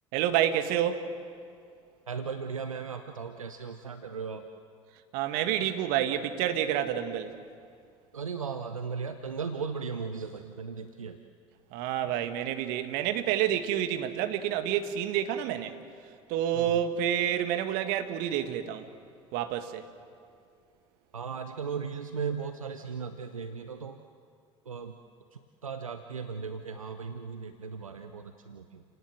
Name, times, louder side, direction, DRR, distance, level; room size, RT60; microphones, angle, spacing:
voice 1, 0.1-1.1 5.1-7.3 11.7-15.7 16.3-18.9 19.3-19.8, right 10 dB, 60° right, 9 dB, 1.7 m, -28 dB
voice 2, 2.1-4.5 8.1-11.2 12.0-12.1 16.5-16.8 21.1-24.0 24.6-25.0 25.3-28.8, right 5 dB, 90° right, 8 dB, 0.8 m, -37 dB
29.5 x 18.0 x 7.8 m, 2.3 s
figure-of-eight pair, 65°, 17 cm